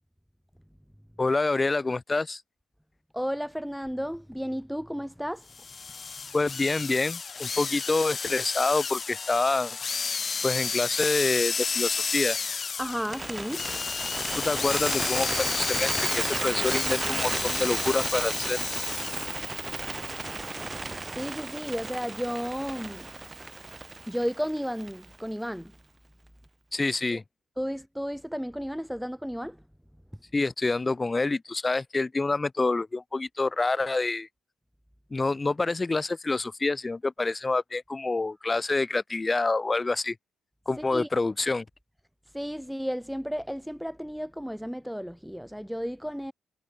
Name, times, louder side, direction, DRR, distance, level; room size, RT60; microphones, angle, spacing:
voice 1, 1.2-2.4 6.3-9.8 10.4-12.4 14.3-18.6 26.7-27.2 30.3-34.3 35.1-40.1 40.7-41.6, left 3 dB, 20° left, 1.6 m, -27 dB
voice 2, 3.1-5.5 12.8-13.6 21.1-23.1 24.1-25.7 27.1-27.2 27.6-29.6 40.8-41.1 42.3-46.3, equal, ahead, 1.7 m, -33 dB
sound 1, 5.5-19.5, left 5 dB, 40° left, 2.2 m, -32 dB
Bird, 13.0-25.2, right 3 dB, 20° right, 3.1 m, -33 dB
cardioid pair, 90°, 0 cm